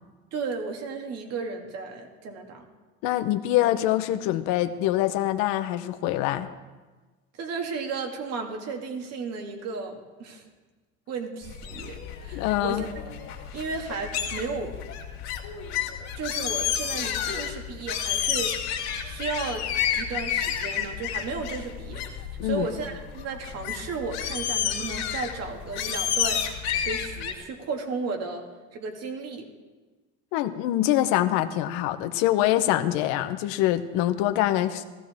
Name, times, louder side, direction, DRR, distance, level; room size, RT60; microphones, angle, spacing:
voice 1, 0.3-2.7 7.4-10.4 11.1-13.2 13.5-14.8 16.1-18.6 19.0-19.7 20.0-28.5 28.7-29.5, right 4 dB, 55° right, 3 dB, 2.2 m, -34 dB
voice 2, 3.0-6.5 12.3-12.8 22.4-22.7 30.3-34.8, left 13 dB, 75° left, 10 dB, 1.0 m, -24 dB
sound 1, 11.4-27.3, left 9 dB, 60° left, 2.4 m, -31 dB
16.0 x 15.0 x 3.6 m, 1.3 s
supercardioid pair, 120°, 31 cm